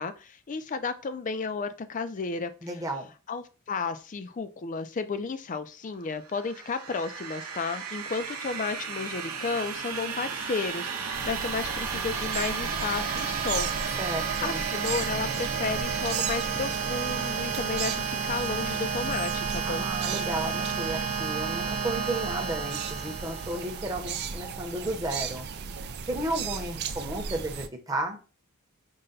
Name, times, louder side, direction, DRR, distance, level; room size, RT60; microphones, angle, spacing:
voice 1, 0.0-2.5 3.3-14.0 14.4-19.9, left 4 dB, 35° left, 11 dB, 0.4 m, -33 dB
voice 2, 2.6-3.1 14.0-14.6 19.6-25.4 26.1-28.2, right 1 dB, 15° right, 2 dB, 0.8 m, -33 dB
sound 1, 6.3-23.9, right 6 dB, 85° right, 0.7 m, -32 dB
sound 2, 11.1-27.7, right 6 dB, 50° right, 0.4 m, -37 dB
5.4 x 2.2 x 3.8 m, 0.34 s
head